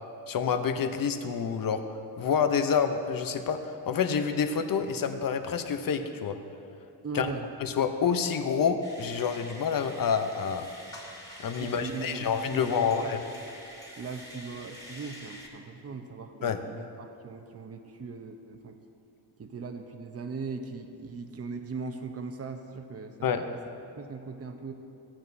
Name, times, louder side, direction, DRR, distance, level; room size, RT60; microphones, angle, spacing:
voice 1, 0.3-1.8 2.2-6.4 7.1-7.3 7.6-10.7 11.4-13.2 16.4-16.6 23.2-23.4, left 6 dB, 55° left, 7 dB, 0.7 m, -28 dB
voice 2, 7.0-7.5 11.6-13.3 14.0-18.8 19.4-23.6 24.0-24.7, right 4 dB, 35° right, 5 dB, 0.8 m, -39 dB
sound 1, 8.8-15.5, equal, 10° left, 2.2 m, -47 dB
14.0 x 8.8 x 2.7 m, 2.7 s
cardioid pair, 70°, 42 cm